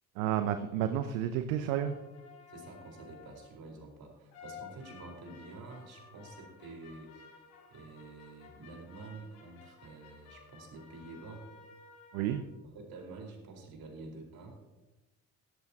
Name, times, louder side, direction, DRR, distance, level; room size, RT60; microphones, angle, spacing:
voice 1, 0.2-2.0 12.1-12.4, right 10 dB, 75° right, 9 dB, 0.9 m, -31 dB
sound 1, 1.5-3.6 4.3-12.5, left 6 dB, 80° left, 4.9 m, -54 dB
voice 2, 2.5-11.4 12.6-14.6, right 3 dB, 60° right, 1 dB, 4.7 m, -48 dB
17.0 x 14.0 x 2.9 m, 1.0 s
hypercardioid pair, 50°, 41 cm